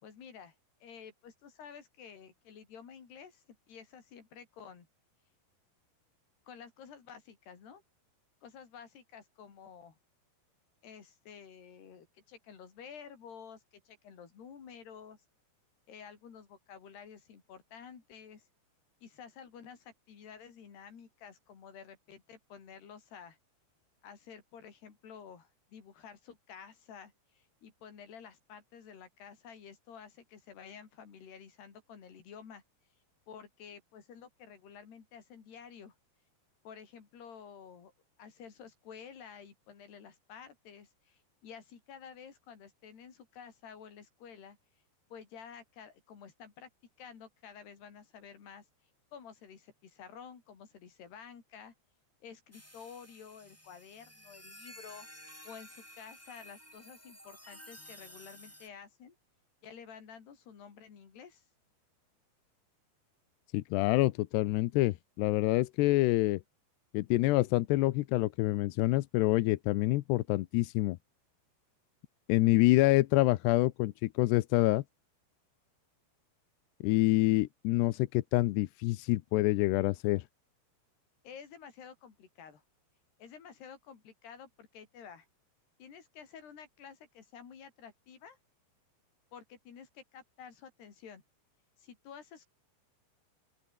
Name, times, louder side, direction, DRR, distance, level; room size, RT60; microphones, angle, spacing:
voice 1, 0.0-0.6 0.8-4.9 6.5-7.8 8.4-10.0 10.8-15.2 15.9-18.5 19.0-23.4 24.0-32.6 33.3-35.9 36.6-37.9 38.2-44.6 45.1-46.7 47.0-48.7 49.1-51.7 52.2-55.1 55.4-59.2 59.6-61.4 81.2-82.6 83.2-85.3 85.8-88.4 89.3-91.2 91.8-92.5, left 7 dB, 65° left, 6.0 m, -51 dB
sound 1, 52.5-58.7, equal, 5° left, 6.2 m, -53 dB
voice 2, 63.5-66.4 66.9-71.0 72.3-74.8 76.8-80.2, left 18 dB, 80° left, 2.8 m, -27 dB
open air
omnidirectional pair, 5.1 m